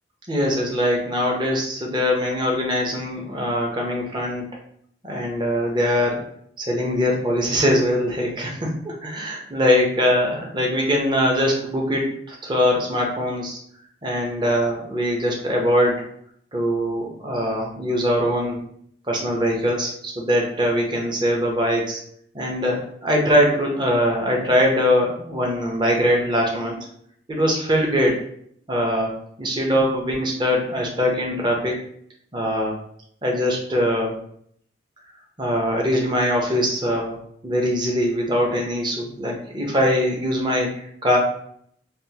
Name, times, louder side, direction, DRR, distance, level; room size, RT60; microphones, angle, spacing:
voice 1, 0.3-4.4 5.0-6.3 6.6-13.6 14.0-16.0 16.5-18.6 19.1-22.0 22.3-26.8 27.3-28.2 28.7-29.1 29.4-31.8 32.3-32.8 33.2-34.1 35.4-37.2 37.4-41.2, equal, 25° right, -1 dB, 0.7 m, -22 dB
3.4 x 2.5 x 2.8 m, 0.67 s
head